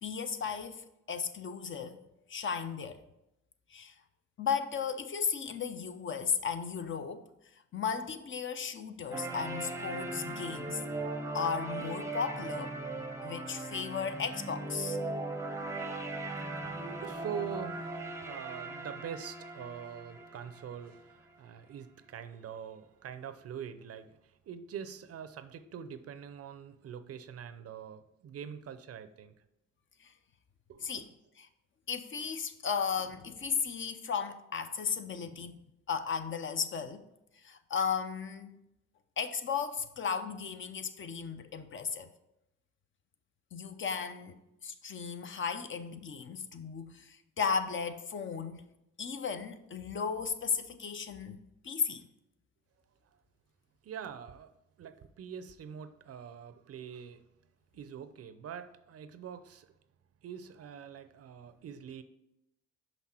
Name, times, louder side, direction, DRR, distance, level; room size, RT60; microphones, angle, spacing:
voice 1, 0.0-2.0 2.3-3.0 3.7-3.9 4.4-7.3 7.7-10.8 11.3-12.7 13.2-15.0 30.0-30.1 30.8-31.1 31.4-31.5 31.9-35.6 35.9-37.1 37.4-38.6 39.2-42.1 43.5-48.7 49.0-52.1, left 6 dB, 40° left, 0.6 m, -35 dB
sound 1, 9.1-21.1, right 2 dB, 10° right, 0.7 m, -39 dB
voice 2, 15.8-29.3 30.7-30.9 53.8-54.5 54.8-57.2 57.7-59.7 60.2-62.0, right 8 dB, 50° right, 0.6 m, -44 dB
6.0 x 5.3 x 4.3 m
cardioid pair, 90°, 30 cm